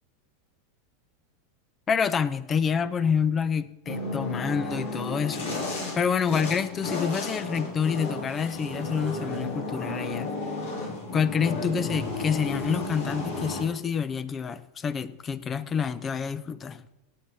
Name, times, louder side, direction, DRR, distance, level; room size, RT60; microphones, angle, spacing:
voice 1, 1.9-5.5 5.9-10.3 11.1-16.8, left 6 dB, 25° left, 16 dB, 0.8 m, -27 dB
sound 1, 3.9-13.6, left 2 dB, 65° left, 4.3 m, -33 dB
17.0 x 8.5 x 4.2 m, 0.91 s
hypercardioid pair, 90°, 0 cm